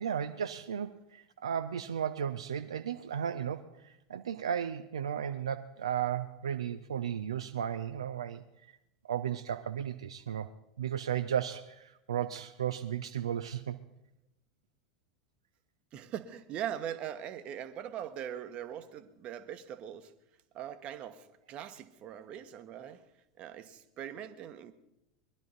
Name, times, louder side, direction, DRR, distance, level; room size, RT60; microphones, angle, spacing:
voice 1, 0.0-8.4 9.0-10.5 10.8-13.8, right 9 dB, 70° right, 0.5 m, -34 dB
voice 2, 15.9-20.1 20.5-23.0 23.4-24.7, right 10 dB, 40° right, 1.1 m, -41 dB
21.5 x 12.0 x 4.1 m
figure-of-eight pair, 80°, 3 cm